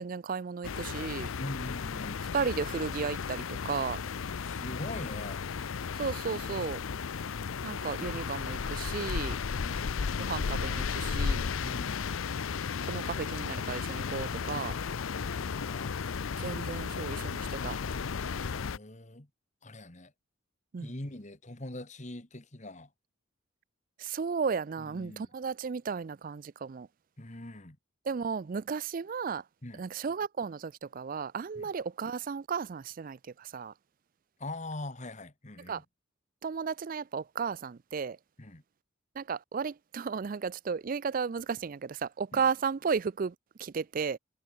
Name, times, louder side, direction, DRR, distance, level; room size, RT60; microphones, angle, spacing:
voice 1, 0.0-1.3 2.3-4.0 6.0-6.8 7.6-9.4 10.2-11.5 12.8-14.8 16.4-17.8 20.7-20.9 24.0-26.9 28.1-29.4 29.8-33.7 35.7-35.8 36.4-38.2 39.2-43.3 43.6-44.2, right 5 dB, 45° right, 0.4 m, -34 dB
sound 1, 0.6-18.8, left 6 dB, 85° left, 0.6 m, -34 dB
voice 2, 1.3-2.3 4.0-5.4 9.5-10.0 11.6-12.1 15.2-16.2 18.5-19.3 19.6-20.1 20.8-22.9 24.8-25.3 27.2-27.8 29.6-29.8 31.6-31.7 34.4-35.8 38.4-38.6 42.3-42.5, left 1 dB, 35° left, 1.9 m, -43 dB
head